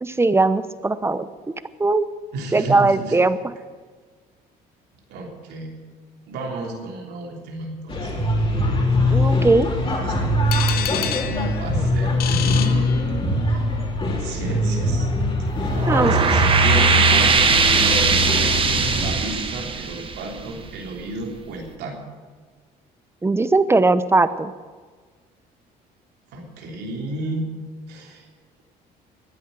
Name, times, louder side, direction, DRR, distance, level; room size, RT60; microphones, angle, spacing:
voice 1, 0.0-1.2 1.8-2.0 2.5-3.4 9.1-9.7 15.9-16.1 23.2-24.5, right 3 dB, 15° right, 14 dB, 0.7 m, -19 dB
voice 2, 2.3-3.1 5.1-5.7 6.3-8.1 10.0-10.1 10.7-13.2 13.5-13.6 14.2-15.1 15.8-22.0 26.3-27.5 27.9-28.2, right 2 dB, 80° right, 0 dB, 3.2 m, -32 dB
sound 1, 7.9-19.2, left 1 dB, 30° left, 3.6 m, -22 dB
sound 2, 10.5-13.6, left 11 dB, 65° left, 0.9 m, -30 dB
sound 3, 15.6-20.9, right 5 dB, 30° right, 1.3 m, -20 dB
14.5 x 9.9 x 8.1 m, 1.5 s
cardioid pair, 110°, 17 cm